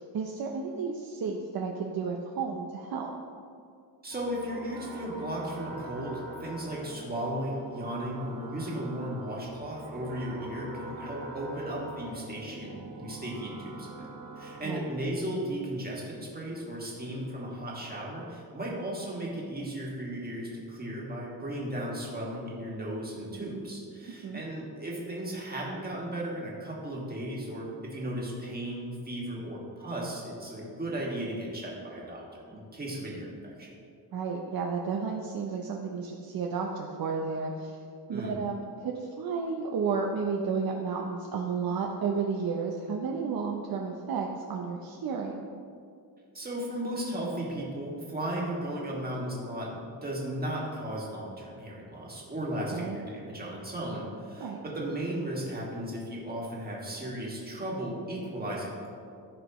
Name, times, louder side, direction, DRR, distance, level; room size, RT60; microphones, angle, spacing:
voice 1, 0.0-3.1 14.6-14.9 24.2-24.4 34.1-37.8 38.1-45.3 52.7-53.0 54.4-54.6, right 5 dB, 55° right, 0 dB, 0.7 m, -32 dB
voice 2, 4.0-14.1 14.4-33.7 38.1-38.3 46.3-58.9, right 1 dB, 20° right, -4 dB, 1.8 m, -35 dB
sound 1, 4.1-14.8, right 2 dB, 75° right, 1.6 m, -43 dB
14.5 x 5.0 x 3.0 m, 2.3 s
wide cardioid pair, 150°, 44 cm